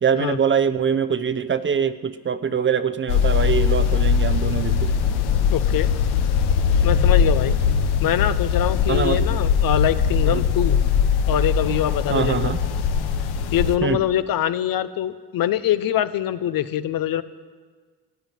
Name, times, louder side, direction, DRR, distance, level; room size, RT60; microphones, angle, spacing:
voice 1, 0.0-4.9 8.9-9.2 10.2-10.4 12.1-12.6 13.8-14.0, right 7 dB, 30° right, 11 dB, 0.8 m, -23 dB
sound 1, 3.1-13.8, left 6 dB, 75° left, 1.1 m, -20 dB
voice 2, 5.5-5.9 6.8-7.5 8.0-10.8 11.3-12.5 13.5-17.2, left 11 dB, 60° left, 13 dB, 0.8 m, -23 dB
15.5 x 9.2 x 9.1 m, 1.5 s
cardioid pair, 90°, 38 cm